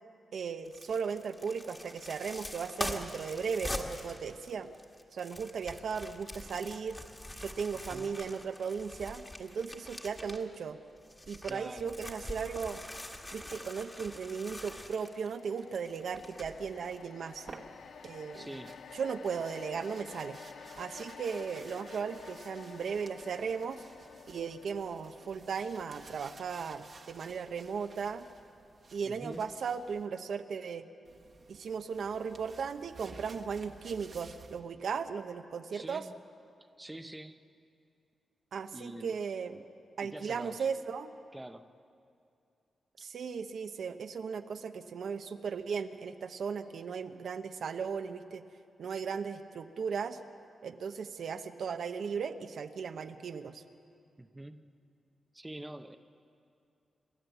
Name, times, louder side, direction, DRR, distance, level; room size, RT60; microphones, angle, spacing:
voice 1, 0.3-4.7 5.1-7.0 7.4-10.8 11.3-12.8 13.3-17.5 18.0-18.5 18.9-20.4 20.8-23.8 24.3-28.3 28.9-30.9 31.5-36.0 38.5-39.6 40.0-41.1 43.0-48.4 48.8-50.2 50.6-53.6, right 6 dB, 75° right, 8 dB, 0.9 m, -37 dB
sound 1, 0.7-10.6 11.0-17.0 17.4-17.5, left 1 dB, 15° left, 1.8 m, -44 dB
voice 2, 11.5-11.9 18.3-18.8 29.0-29.5 35.7-36.2 36.8-37.4 38.7-39.2 40.0-40.6 41.3-41.7 54.2-54.7 55.3-56.0, right 1 dB, 10° right, 8 dB, 0.7 m, -45 dB
sound 2, 14.7-29.1 29.4-29.6, left 6 dB, 80° left, 0.6 m, -52 dB
sound 3, 17.3-30.1 31.0-34.6, right 4 dB, 50° right, 1.3 m, -55 dB
28.0 x 12.5 x 8.0 m, 2.5 s
wide cardioid pair, 120°, 0 cm